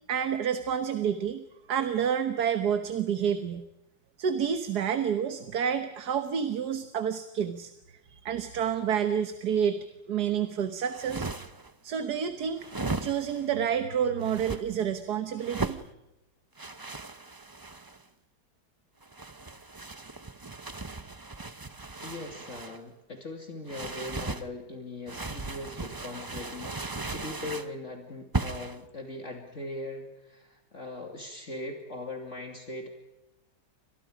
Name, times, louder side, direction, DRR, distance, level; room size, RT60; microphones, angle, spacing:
voice 1, 0.1-3.7 4.2-7.7 8.1-9.8 10.1-11.3 11.8-12.7 13.0-15.8, right 8 dB, 70° right, 9 dB, 1.7 m, -29 dB
sound 1, 10.8-11.7 12.6-13.5 14.2-14.6 15.4-15.9 16.6-18.0 19.0-22.8 23.7-24.5 25.1-27.7 28.3-28.8, right 3 dB, 20° right, 0.5 m, -37 dB
voice 2, 22.0-32.9, left 2 dB, 45° left, 3 dB, 2.9 m, -40 dB
30.0 x 26.0 x 5.0 m, 0.96 s
omnidirectional pair, 1.8 m